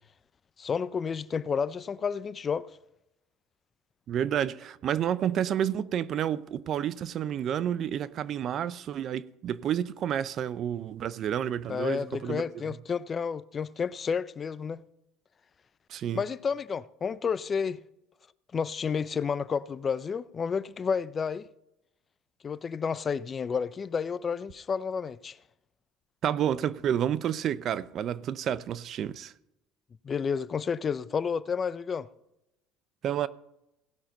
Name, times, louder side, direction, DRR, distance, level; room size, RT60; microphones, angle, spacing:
voice 1, 0.6-2.7 11.7-14.8 16.1-17.8 18.5-21.5 22.4-25.4 30.0-32.1, left 6 dB, 35° left, 0.5 m, -31 dB
voice 2, 4.1-12.4 15.9-16.2 26.2-29.3 33.0-33.3, right 9 dB, 50° right, 0.5 m, -30 dB
17.0 x 5.8 x 5.3 m
supercardioid pair, 85°, 0 cm